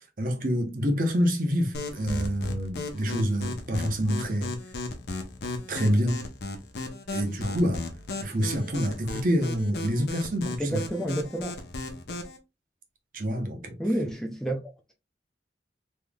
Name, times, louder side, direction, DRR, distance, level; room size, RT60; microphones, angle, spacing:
voice 1, 0.0-4.5 5.7-6.2 7.1-7.8 8.2-10.8 13.1-13.8, equal, 50° right, 0.8 m, -27 dB
sound 1, 1.7-12.4, left 2 dB, 70° left, 0.7 m, -35 dB
voice 2, 10.6-11.6 13.8-14.7, right 1 dB, 5° left, 0.5 m, -29 dB
3.5 x 3.2 x 2.3 m
head